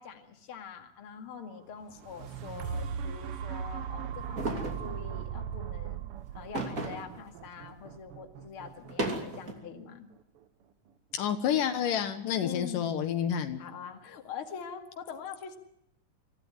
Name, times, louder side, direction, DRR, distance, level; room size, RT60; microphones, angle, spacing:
voice 1, 0.0-6.1 6.3-10.1 12.4-12.8 13.6-15.6, left 7 dB, 45° left, 5 dB, 2.6 m, -44 dB
sound 1, 1.8-9.9 10.4-10.5, right 7 dB, 70° right, 1.3 m, -39 dB
sound 2, 4.4-4.9 6.5-7.2 7.6-7.7 8.8-9.5, right 2 dB, 25° right, 2.9 m, -33 dB
voice 2, 11.1-13.6, left 9 dB, 80° left, 8 dB, 2.9 m, -29 dB
24.0 x 14.5 x 9.7 m, 0.77 s
omnidirectional pair, 3.8 m